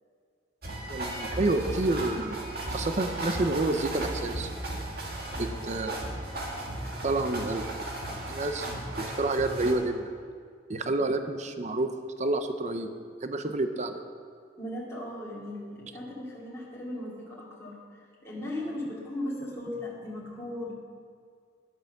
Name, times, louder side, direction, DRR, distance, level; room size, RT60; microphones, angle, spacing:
sound 1, 0.6-9.7, right 1 dB, 60° right, 2.0 m, -35 dB
voice 1, 0.9-2.4 2.7-4.5 5.4-5.9 7.0-7.6 8.3-10.1 10.7-11.9 12.2-12.9 13.2-14.0, right 2 dB, 40° right, 7 dB, 0.7 m, -29 dB
voice 2, 14.6-17.7 18.2-20.7, left 1 dB, 15° left, -8 dB, 2.8 m, -37 dB
11.0 x 8.1 x 6.6 m, 2.2 s
head